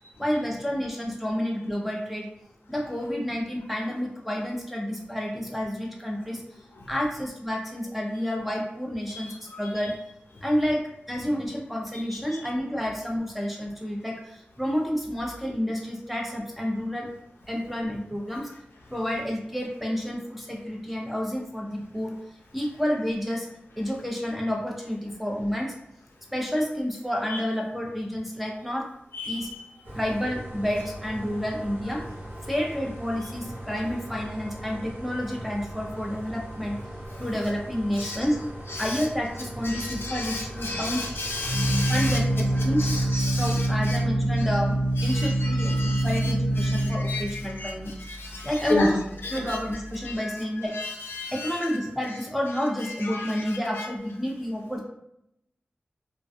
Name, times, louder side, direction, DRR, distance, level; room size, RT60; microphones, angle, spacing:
voice 1, 0.2-2.3 2.7-6.4 6.9-10.0 10.4-17.1 17.5-18.5 18.9-22.1 22.5-23.5 23.8-25.7 26.3-28.9 29.3-29.5 29.9-32.0 32.5-36.8 37.2-38.4 38.8-41.0 41.9-42.9 43.3-47.9 48.4-49.0 49.3-50.8 51.3-54.8, equal, 5° right, -1 dB, 0.4 m, -29 dB
voice 2, 9.1-9.6 12.3-12.4 27.3-27.4 29.1-29.5 38.0-38.2 38.7-39.1 39.6-42.2 42.8-44.0 45.0-47.7 48.0-48.9 49.2-49.6 50.0-50.3 50.7-51.8 52.8-53.4 53.8-53.9, left 2 dB, 80° left, -1 dB, 0.5 m, -33 dB
sound 1, 29.8-43.2, right 1 dB, 70° right, 0.7 m, -39 dB
Organ, 39.7-50.1, right 1 dB, 35° right, 1.0 m, -26 dB
2.4 x 2.1 x 2.6 m, 0.78 s
wide cardioid pair, 105°, 4 cm